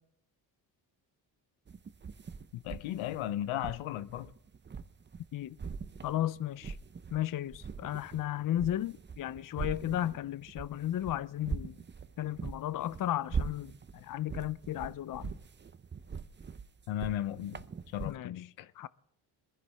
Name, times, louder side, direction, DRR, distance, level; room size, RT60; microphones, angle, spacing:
sound 1, 1.7-5.3 5.6-7.2 7.5-18.1, right 5 dB, 25° right, 0.6 m, -42 dB
voice 1, 2.5-4.3 16.9-18.7, left 12 dB, 80° left, 0.8 m, -36 dB
voice 2, 6.0-6.8 7.1-11.7 12.2-15.3 18.0-18.4 18.8-18.9, left 12 dB, 45° left, 0.6 m, -34 dB
23.0 x 10.5 x 3.5 m
supercardioid pair, 65°, 47 cm